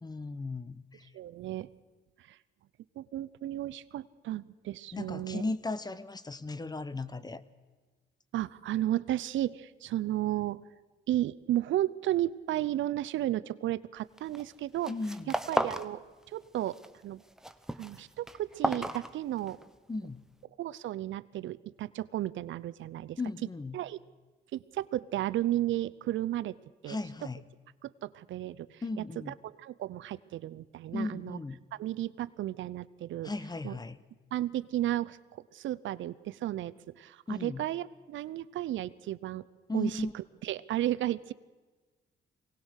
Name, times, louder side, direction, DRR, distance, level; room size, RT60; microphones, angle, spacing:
voice 1, 0.0-1.0 4.9-7.4 14.9-15.3 19.9-20.2 23.2-23.8 26.9-27.4 28.8-29.4 30.9-31.6 33.2-34.0 37.3-37.6 39.7-40.1, left 3 dB, 20° left, 16 dB, 1.0 m, -36 dB
voice 2, 1.1-1.7 2.3-2.4 3.0-5.4 8.3-10.6 11.1-14.9 15.5-16.0 16.3-16.8 17.0-17.2 17.8-19.6 20.6-23.2 23.7-24.0 24.5-26.5 26.8-27.0 27.8-31.4 31.8-33.3 33.6-33.8 34.3-39.4 39.7-41.3, right 13 dB, 75° right, 16 dB, 0.7 m, -33 dB
sound 1, 14.2-14.5 14.8-15.9 16.2-16.9 17.2-19.7, right 1 dB, 5° right, 1.1 m, -34 dB
23.5 x 18.5 x 6.4 m, 1.3 s
cardioid pair, 90°, 20 cm